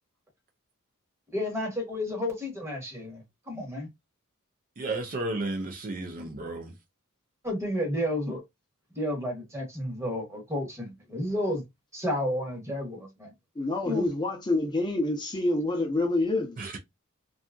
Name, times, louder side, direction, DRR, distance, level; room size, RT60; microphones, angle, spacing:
voice 1, 1.3-3.9 7.4-8.4 8.9-11.6 11.9-13.3 13.9-14.1, left 1 dB, 15° right, 1.0 m, -31 dB
voice 2, 4.8-6.7 16.6-16.8, right 2 dB, 40° right, 0.5 m, -33 dB
voice 3, 13.6-16.6, left 2 dB, 20° left, 0.6 m, -27 dB
2.6 x 2.3 x 2.3 m
head